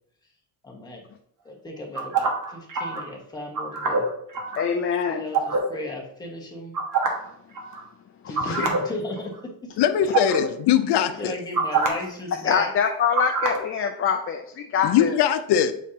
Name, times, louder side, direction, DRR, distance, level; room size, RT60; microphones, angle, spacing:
voice 1, 0.6-1.0 1.4-4.1 5.1-6.8 8.3-9.3 9.6-9.8 11.2-12.7, left 1 dB, 10° left, -2 dB, 1.1 m, -35 dB
sound 1, 1.9-3.0 3.5-4.6 5.3-5.6 6.7-7.3 7.5-7.8 8.4-8.8 9.2-9.4 10.1-10.4 11.5-11.9 13.1-13.6, right 4 dB, 50° right, 1.2 m, -24 dB
voice 2, 4.5-5.2 8.2-8.7 12.4-15.2, left 7 dB, 35° left, 3 dB, 0.4 m, -25 dB
voice 3, 9.8-11.4 14.8-15.7, left 9 dB, 80° left, 10 dB, 0.6 m, -21 dB
7.2 x 5.0 x 2.8 m, 0.72 s
cardioid pair, 165°, 40 cm